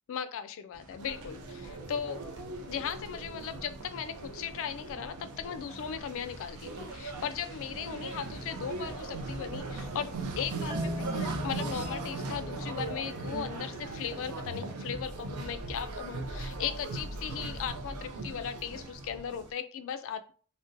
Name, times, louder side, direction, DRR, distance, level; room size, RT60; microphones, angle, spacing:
voice 1, 0.1-2.2 2.7-20.3, left 7 dB, 60° left, 11 dB, 0.3 m, -37 dB
sound 1, 0.7-12.8, right 1 dB, 60° right, 0.8 m, -53 dB
sound 2, 1.0-19.5, right 3 dB, 85° right, 0.5 m, -39 dB
Marimba xylophone, 10.7-13.7, left 1 dB, 20° right, 0.4 m, -40 dB
2.5 x 2.1 x 3.8 m, 0.42 s
head